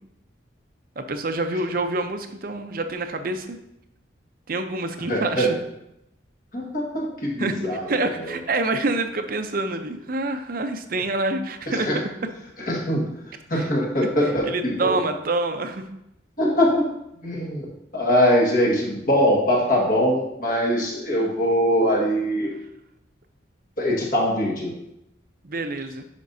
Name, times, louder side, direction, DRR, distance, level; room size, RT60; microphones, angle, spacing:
voice 1, 1.0-3.6 4.5-5.6 7.4-11.9 13.5-13.7 14.4-15.9 25.4-26.0, right 2 dB, 50° right, 7 dB, 0.6 m, -27 dB
voice 2, 5.1-5.5 6.5-7.9 8.1-8.4 11.7-12.0 12.7-13.1 13.5-15.0 16.4-16.9 17.2-17.7 17.9-22.5 23.8-24.7, equal, 45° left, -2 dB, 1.6 m, -22 dB
10.0 x 5.3 x 2.7 m, 0.83 s
head